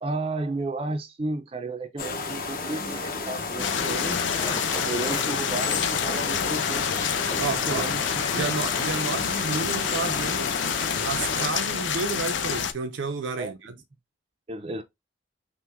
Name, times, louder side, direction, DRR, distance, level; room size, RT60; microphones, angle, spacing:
voice 1, 0.0-4.5 4.8-6.9 7.6-8.5 13.4-13.5 14.5-14.8, right 2 dB, 30° right, 0.4 m, -33 dB
sound 1, 2.0-11.5, left 4 dB, 50° left, 0.8 m, -32 dB
sound 2, 2.7-10.1, left 1 dB, 20° left, 0.7 m, -40 dB
sound 3, 3.6-12.7, left 7 dB, 80° left, 0.5 m, -28 dB
voice 2, 7.2-7.9 8.3-10.5 11.0-13.7, right 4 dB, 85° right, 0.5 m, -31 dB
5.8 x 2.1 x 3.4 m
head